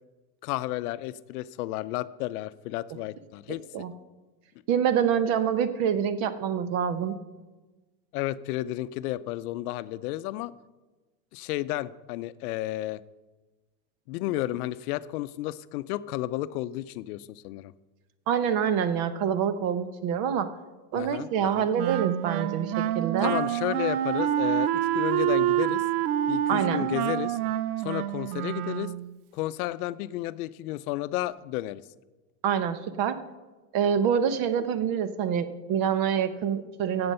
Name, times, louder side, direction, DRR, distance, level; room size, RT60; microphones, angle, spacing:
voice 1, 0.4-3.6 8.1-10.5 11.3-13.0 14.1-17.7 20.9-21.3 21.6-21.7 23.2-25.8 26.3-27.4 27.8-28.9 29.3-31.8, left 15 dB, 75° left, 15 dB, 0.7 m, -32 dB
voice 2, 4.7-7.2 18.3-20.5 20.9-23.3 26.5-26.9 32.4-33.2 33.7-37.1, right 8 dB, 50° right, 12 dB, 1.0 m, -26 dB
Wind instrument woodwind instrument, 21.8-29.1, right 12 dB, 75° right, 0.7 m, -27 dB
14.5 x 8.0 x 5.5 m, 1.2 s
supercardioid pair, 135°, 45 cm